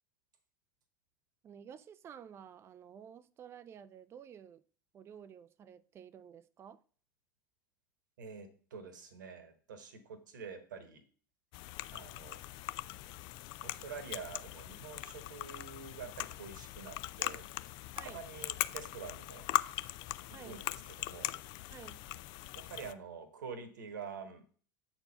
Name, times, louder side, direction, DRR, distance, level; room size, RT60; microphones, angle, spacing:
voice 1, 1.4-4.6 4.9-6.8 18.0-18.2 20.3-20.6 21.7-22.0, right 8 dB, 25° right, 0.4 m, -52 dB
voice 2, 8.2-11.0 11.9-12.4 13.6-17.5 18.0-19.5 20.4-21.4 22.5-24.4, right 6 dB, 65° right, 1.2 m, -47 dB
sound 1, 11.5-22.9, left 17 dB, 45° left, 0.4 m, -40 dB
7.7 x 4.5 x 5.5 m
figure-of-eight pair, 75°, 11 cm